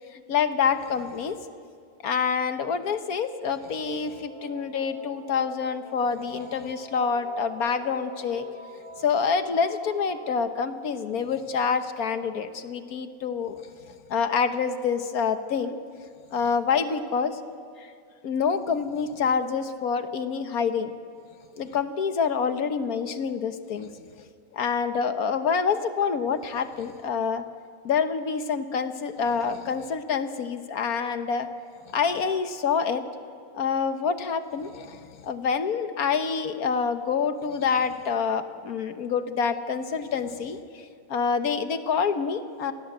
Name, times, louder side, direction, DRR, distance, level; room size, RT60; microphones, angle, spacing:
voice 1, 0.3-1.4 2.0-8.5 9.0-13.6 14.1-15.8 16.3-17.4 18.2-20.9 21.6-23.9 24.5-27.4 27.8-31.5 31.9-33.0 33.5-40.6 41.1-42.7, left 6 dB, 85° left, 9 dB, 1.6 m, -27 dB
sound 1, 3.6-10.3, equal, 55° right, 5.2 m, -44 dB
26.0 x 18.0 x 7.9 m, 2.2 s
omnidirectional pair, 1.5 m